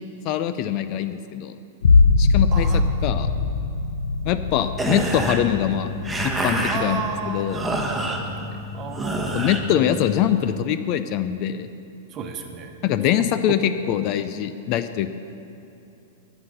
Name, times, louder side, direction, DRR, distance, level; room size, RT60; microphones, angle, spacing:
voice 1, 0.0-1.5 2.2-3.3 4.2-5.9 6.2-7.7 9.3-11.7 12.8-15.1, left 10 dB, 45° left, 11 dB, 0.4 m, -23 dB
sound 1, 1.8-7.3 7.7-8.3, left 4 dB, 85° left, 0.7 m, -22 dB
voice 2, 2.5-2.8 6.7-8.5 8.7-9.5 12.1-12.7, right 6 dB, 30° right, 4 dB, 1.2 m, -33 dB
sound 2, 4.7-10.6, right 1 dB, 5° right, 1.1 m, -28 dB
9.5 x 9.0 x 6.7 m, 2.8 s
hypercardioid pair, 135°, 0 cm